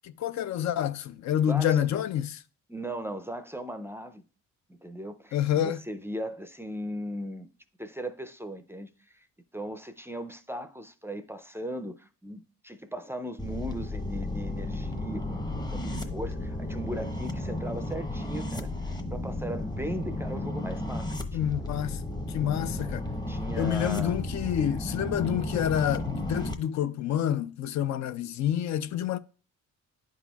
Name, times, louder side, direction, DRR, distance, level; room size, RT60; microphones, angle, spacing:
voice 1, 0.0-2.4 5.3-5.8 21.3-22.0 22.3-23.1 23.6-29.2, left 10 dB, 65° left, 0.5 m, -28 dB
voice 2, 1.3-1.9 2.7-4.2 4.8-7.5 7.8-8.9 9.1-9.2 9.5-18.7 19.1-21.1 21.4-21.5 23.3-24.2, right 1 dB, 10° right, 0.4 m, -38 dB
sound 1, 13.4-26.5, left 1 dB, 15° left, 0.7 m, -33 dB
10.0 x 4.2 x 2.3 m
cardioid pair, 90°, 30 cm